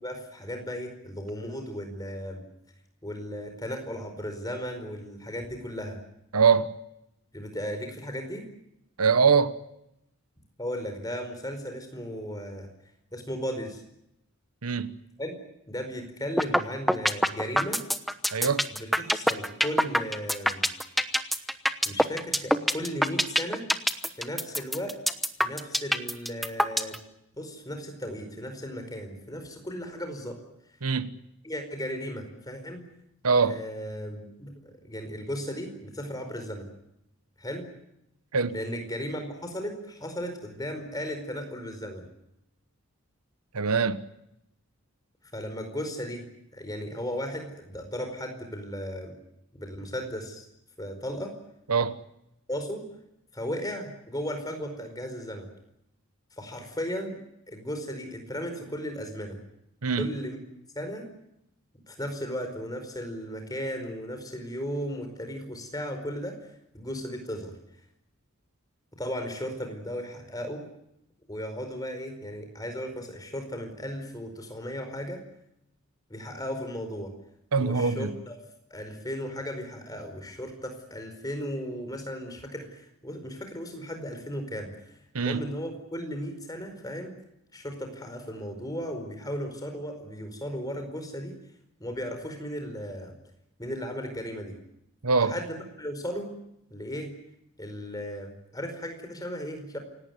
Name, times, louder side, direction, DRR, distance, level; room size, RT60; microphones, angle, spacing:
voice 1, 0.0-2.4 3.0-6.0 7.3-8.4 10.6-12.7 13.1-13.8 15.2-15.4 15.7-17.8 18.7-20.7 21.8-23.7 24.2-25.0 25.4-27.0 27.3-30.4 31.4-32.9 33.5-36.7 37.4-37.7 38.5-42.1 45.3-46.3 46.5-49.1 49.5-50.4 50.8-51.3 52.5-52.8 53.3-55.5 56.4-57.2 57.5-59.4 60.0-60.4 60.7-61.1 61.9-66.4 66.7-67.5 69.0-70.7 71.3-75.2 76.1-77.1 77.6-78.4 78.7-84.9 85.2-87.1 87.5-91.3 91.8-93.1 93.6-94.5 95.2-96.3 96.7-97.1 97.6-99.8, equal, 15° left, 4.8 m, -36 dB
voice 2, 6.3-6.7 9.0-9.5 14.6-15.0 18.3-18.7 30.8-31.2 33.2-33.6 38.3-38.6 43.5-44.0 51.7-52.0 59.8-60.1 77.5-78.1 85.1-85.5 95.0-95.4, right 5 dB, 90° right, 1.2 m, -23 dB
sound 1, 16.4-16.6 16.9-27.0, equal, ahead, 1.0 m, -23 dB
28.0 x 18.0 x 9.4 m
head